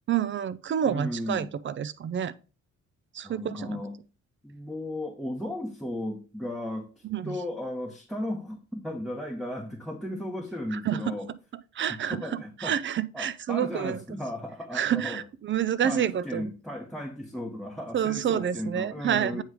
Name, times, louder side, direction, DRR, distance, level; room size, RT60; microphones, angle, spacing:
voice 1, 0.1-2.3 3.1-3.8 7.0-7.4 10.7-11.0 11.8-12.2 12.6-14.0 14.7-16.4 17.9-19.4, right 9 dB, 40° right, 0.5 m, -28 dB
voice 2, 0.8-1.5 3.2-3.9 4.4-11.3 12.1-12.8 13.1-15.2 15.8-19.4, left 1 dB, ahead, 1.1 m, -35 dB
8.3 x 3.1 x 4.9 m
cardioid pair, 90°, 30 cm